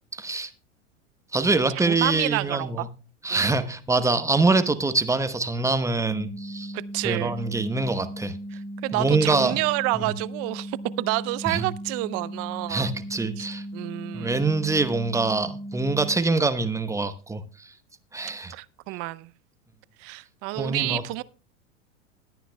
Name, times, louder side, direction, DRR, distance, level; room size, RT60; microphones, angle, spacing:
voice 1, 0.1-0.5 1.3-2.9 3.2-6.7 7.0-8.3 8.9-9.6 10.0-10.1 11.5-11.7 12.7-13.6 14.1-17.4 18.1-18.5 20.6-21.0, right 3 dB, 10° right, 0.9 m, -24 dB
voice 2, 1.7-2.9 3.3-3.6 6.7-7.4 8.5-12.9 13.4-13.5 13.7-14.4 18.5-19.3 20.0-21.2, right 20 dB, 40° right, 0.6 m, -29 dB
sound 1, 6.1-16.1, right 1 dB, 90° right, 2.2 m, -37 dB
21.0 x 9.2 x 2.3 m
hypercardioid pair, 100°, 37 cm